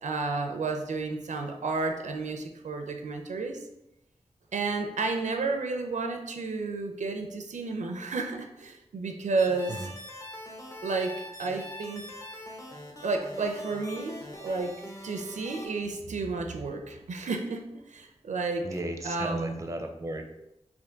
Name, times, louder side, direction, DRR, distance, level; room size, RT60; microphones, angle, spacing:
voice 1, 0.0-3.6 4.5-9.8 10.8-12.1 13.0-18.7 19.0-19.6, right 3 dB, 80° right, 5 dB, 0.4 m, -31 dB
sound 1, 9.4-15.7, equal, 25° left, 0.8 m, -43 dB
voice 2, 18.6-20.2, right 1 dB, 25° right, 4 dB, 0.5 m, -35 dB
3.4 x 2.6 x 3.8 m, 0.89 s
wide cardioid pair, 65°, 12 cm